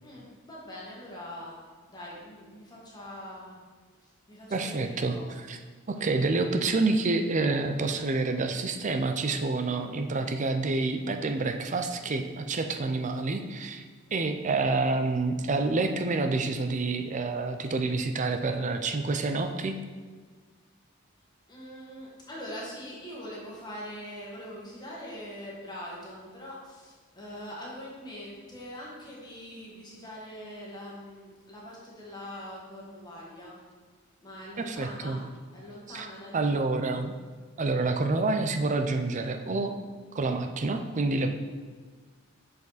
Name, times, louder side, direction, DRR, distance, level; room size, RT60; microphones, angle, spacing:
voice 1, 0.0-1.6 1.9-3.6 4.0-5.3 14.0-14.3 21.5-33.6 34.2-35.2 35.5-36.6, equal, 20° left, -5 dB, 1.6 m, -43 dB
voice 2, 4.5-5.2 5.5-5.6 5.9-13.8 14.1-19.8 34.6-35.2 35.9-36.1 36.3-37.1 37.6-39.8 40.1-41.3, right 3 dB, 35° right, 7 dB, 0.5 m, -28 dB
6.8 x 5.2 x 4.1 m, 1.5 s
head